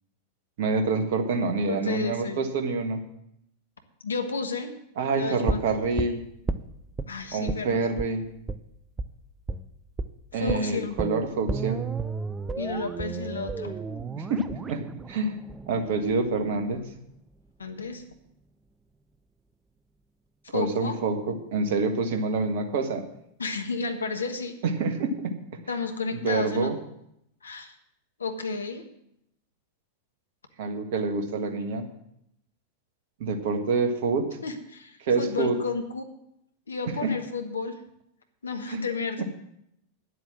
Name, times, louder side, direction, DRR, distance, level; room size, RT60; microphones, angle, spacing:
voice 1, 0.6-3.0 5.0-6.2 7.3-8.2 10.3-11.8 14.2-15.4 15.7-16.9 20.5-23.0 24.6-25.3 26.1-26.8 30.6-31.9 33.2-34.3 35.0-35.6 37.0-37.1 38.7-38.8 39.2-39.3, right 3 dB, 55° right, 6 dB, 1.6 m, -27 dB
voice 2, 1.7-2.4 4.0-4.7 5.1-5.6 7.1-7.9 10.3-11.0 12.6-13.7 17.6-18.0 20.5-21.0 23.4-24.5 25.7-26.7 27.4-27.7 28.2-28.8 34.4-36.0 36.7-37.8 38.4-39.2, left 4 dB, 75° left, 7 dB, 1.4 m, -32 dB
sound 1, 5.5-7.1 7.5-7.7 8.0-8.1 8.5-8.6 9.0-9.1 9.5-9.7 10.0-10.1 10.5-16.5 16.8-16.9, right 4 dB, 15° right, 0.6 m, -32 dB
10.0 x 7.9 x 7.5 m, 0.77 s
figure-of-eight pair, 90°, 0 cm